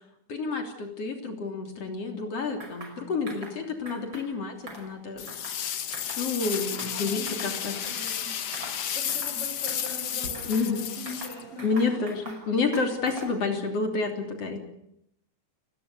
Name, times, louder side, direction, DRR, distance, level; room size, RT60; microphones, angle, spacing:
voice 1, 0.3-5.3 6.2-7.8 10.4-10.9 11.6-14.6, left 4 dB, 55° left, 4 dB, 4.3 m, -29 dB
sound 1, 2.6-3.0 3.3-3.6 3.9-4.3 4.6-5.6 5.9-6.2 6.5-7.5 7.8-8.2 8.5-8.8 9.1-9.4 9.7-10.7 11.1-12.4 12.7-13.4, right 1 dB, 40° right, 6.3 m, -43 dB
sound 2, 5.2-11.9, left 9 dB, 80° left, 0.9 m, -32 dB
voice 2, 6.7-12.4, right 1 dB, 20° right, 0 dB, 5.7 m, -43 dB
30.0 x 20.0 x 6.8 m, 0.76 s
omnidirectional pair, 3.4 m